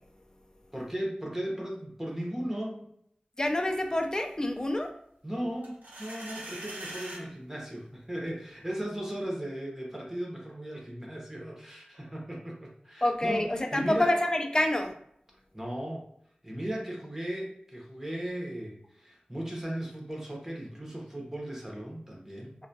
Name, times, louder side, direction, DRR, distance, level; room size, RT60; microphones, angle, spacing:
voice 1, 0.7-2.9 5.2-14.1 15.5-16.1 16.4-22.6, right 1 dB, 15° right, -2 dB, 0.7 m, -37 dB
voice 2, 3.4-4.9 13.0-14.9, left 1 dB, 25° left, 4 dB, 0.4 m, -27 dB
sound 1, 5.6-7.2, right 1 dB, 85° right, 0.8 m, -41 dB
2.3 x 2.2 x 2.6 m, 0.71 s
wide cardioid pair, 45°, 3 cm